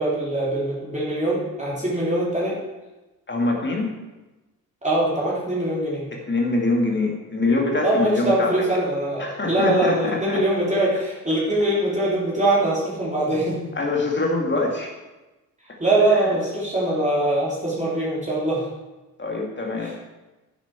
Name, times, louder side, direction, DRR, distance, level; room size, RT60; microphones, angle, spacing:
voice 1, 0.0-2.6 4.8-6.1 7.8-13.6 15.8-18.7 19.8-20.0, right 1 dB, 15° right, -6 dB, 3.5 m, -22 dB
voice 2, 3.3-3.9 6.1-8.5 9.2-10.4 13.8-14.9 16.1-16.3 19.2-20.0, left 2 dB, 20° left, -1 dB, 2.4 m, -24 dB
10.5 x 8.6 x 4.7 m, 1.1 s
figure-of-eight pair, 45°, 49 cm